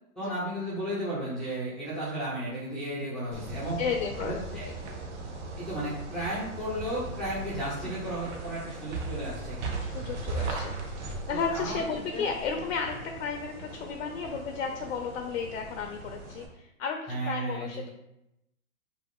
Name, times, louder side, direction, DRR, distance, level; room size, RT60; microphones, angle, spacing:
voice 1, 0.2-3.8 4.2-4.7 5.6-9.8 10.3-10.5 11.3-11.8 12.1-12.3 17.1-17.9, right 1 dB, ahead, -11 dB, 0.4 m, -34 dB
Steps On Ground Summer Forest, 3.3-16.5, right 3 dB, 55° right, 0.7 m, -38 dB
voice 2, 3.8-4.7 7.8-7.9 9.8-10.8 11.3-17.9, left 5 dB, 55° left, 4 dB, 0.5 m, -33 dB
2.4 x 2.3 x 3.4 m, 0.87 s
hypercardioid pair, 125°, 43 cm